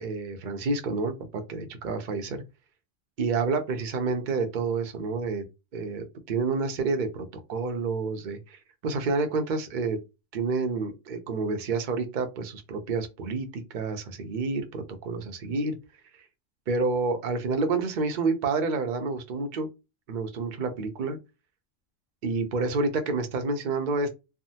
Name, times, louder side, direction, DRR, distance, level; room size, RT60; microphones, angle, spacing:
voice 1, 0.0-2.4 3.2-5.4 5.7-10.0 10.3-15.8 16.7-19.7 20.1-21.2 22.2-24.1, right 3 dB, 50° right, 6 dB, 0.6 m, -29 dB
3.5 x 2.1 x 2.7 m, 0.25 s
omnidirectional pair, 1.4 m